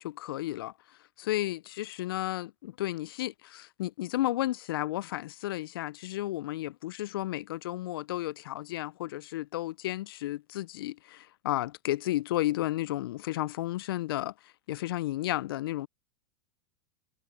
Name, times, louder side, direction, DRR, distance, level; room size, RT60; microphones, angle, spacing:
voice 1, 0.0-15.9, left 15 dB, 75° left, 0.4 m, -33 dB
hypercardioid pair, 105°, 12 cm